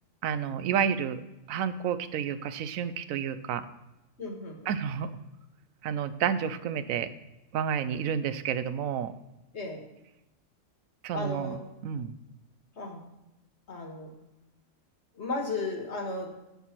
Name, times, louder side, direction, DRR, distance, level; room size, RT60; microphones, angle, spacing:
voice 1, 0.2-1.2 1.5-3.6 4.7-5.1 5.8-7.1 7.5-9.1 11.0-11.6 11.8-12.1, right 8 dB, 90° right, 13 dB, 1.0 m, -30 dB
voice 2, 4.2-4.7 9.5-9.8 11.1-11.6 12.8-13.0 13.7-14.1 15.1-16.3, left 2 dB, 55° left, 2 dB, 1.7 m, -34 dB
10.0 x 4.8 x 5.8 m, 0.96 s
omnidirectional pair, 1.4 m